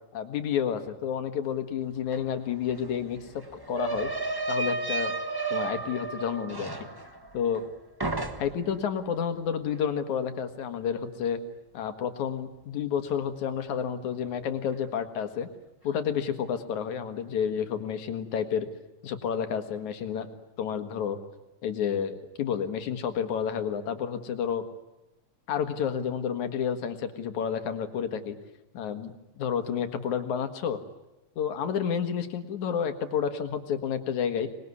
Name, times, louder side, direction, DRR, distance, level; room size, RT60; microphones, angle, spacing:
voice 1, 0.1-4.1 4.5-5.2 5.5-6.7 7.3-7.6 8.4-11.4 11.7-15.5 15.8-18.7 19.0-20.3 20.6-21.2 21.6-24.6 25.5-28.4 28.7-30.8 31.4-34.5, left 8 dB, 80° left, 8 dB, 3.1 m, -30 dB
sound 1, 2.1-2.2 2.5-7.7 8.0-8.7, right 3 dB, 20° right, 0.6 m, -33 dB
26.0 x 20.5 x 9.7 m, 0.96 s
omnidirectional pair, 3.3 m